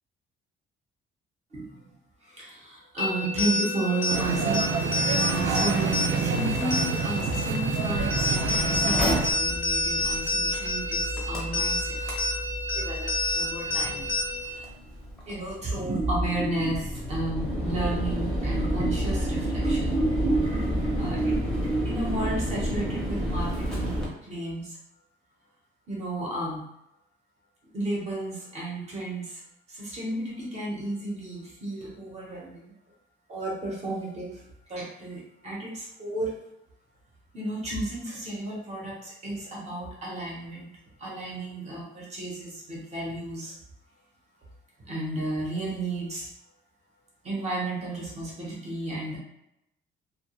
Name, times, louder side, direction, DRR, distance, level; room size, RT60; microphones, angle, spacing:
voice 1, 1.5-1.8 2.2-4.6 5.4-12.0 12.7-14.1 14.4-14.7 15.3-23.9 24.2-24.8 25.9-26.6 27.7-29.4 29.7-32.7 33.3-34.4 34.7-36.3 37.3-40.7 41.0-43.5 44.9-46.3 47.2-49.2, right 2 dB, 30° right, -4 dB, 0.7 m, -32 dB
sound 1, 3.0-14.6, left 2 dB, 45° left, 0.5 m, -29 dB
sound 2, 4.1-9.3, right 5 dB, 65° right, 0.4 m, -27 dB
Mechanical fan, 8.0-24.0, equal, 5° left, 0.6 m, -31 dB
2.3 x 2.2 x 2.9 m, 0.83 s
cardioid pair, 165°, 21 cm